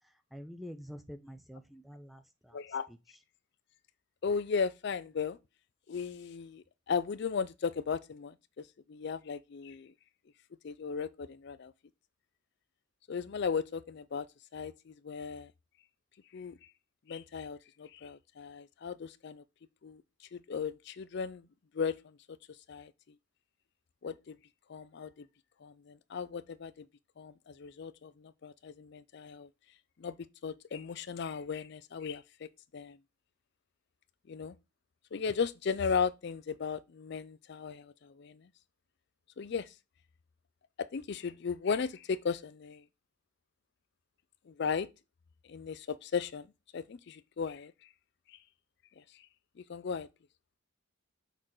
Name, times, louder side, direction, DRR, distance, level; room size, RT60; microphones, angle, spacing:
voice 1, 0.3-2.6, equal, ahead, 0.5 m, -47 dB
voice 2, 2.5-2.8 4.2-5.4 5.9-8.3 8.9-9.9 10.6-11.7 13.1-14.3 14.5-15.5 16.3-16.5 17.1-19.4 19.8-20.0 20.3-21.5 21.7-22.0 22.7-22.9 24.0-24.4 24.7-25.2 25.6-26.8 27.2-29.5 30.0-32.5 32.7-33.0 34.3-34.6 35.1-38.4 39.4-39.7 40.9-42.8 44.5-44.9 45.5-46.5 46.7-47.7 49.7-50.1, left 6 dB, 50° left, 0.4 m, -36 dB
6.5 x 4.5 x 3.9 m
head